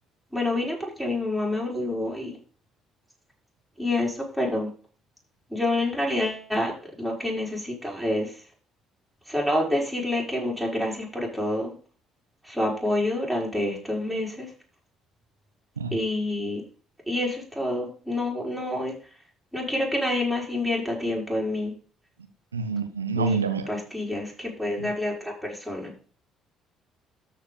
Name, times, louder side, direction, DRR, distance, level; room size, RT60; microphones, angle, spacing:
voice 1, 0.3-2.4 3.8-4.7 5.5-6.7 7.0-8.3 9.3-11.7 12.4-14.5 15.9-16.6 17.1-18.9 19.5-21.7 23.1-23.4 23.7-25.9, left 1 dB, ahead, -2 dB, 5.0 m, -27 dB
voice 2, 22.5-23.7 24.8-24.9, right 4 dB, 85° right, 8 dB, 0.7 m, -27 dB
13.0 x 4.7 x 5.3 m, 0.40 s
figure-of-eight pair, 50°, 0 cm